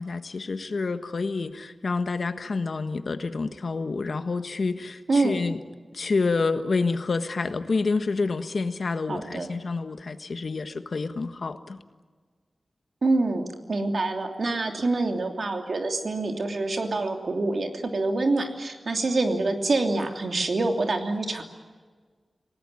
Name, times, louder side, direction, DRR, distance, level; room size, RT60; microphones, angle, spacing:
voice 1, 0.0-5.6 5.9-11.8, left 4 dB, 65° left, 9 dB, 1.5 m, -28 dB
voice 2, 9.1-9.5 13.0-21.4, right 2 dB, 65° right, 4 dB, 2.9 m, -26 dB
28.0 x 18.5 x 9.8 m, 1.5 s
wide cardioid pair, 105°, 0 cm